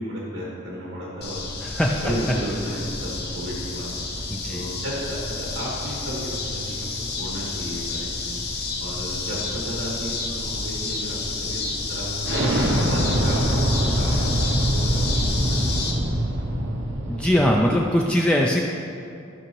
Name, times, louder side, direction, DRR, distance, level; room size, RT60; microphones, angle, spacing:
voice 1, 0.0-1.5 2.0-3.9 4.4-6.9 7.2-8.4 8.8-11.6 11.9-12.3 12.8-16.1, equal, 85° right, -5 dB, 1.8 m, -33 dB
sound 1, 1.2-15.9, left 3 dB, 55° left, 1.0 m, -30 dB
voice 2, 1.6-1.9 4.3-4.6 17.1-18.6, left 1 dB, 5° left, -1 dB, 0.4 m, -21 dB
Explosion, 12.2-17.8, equal, 65° right, 0.8 m, -23 dB
12.5 x 6.2 x 3.1 m, 2.6 s
head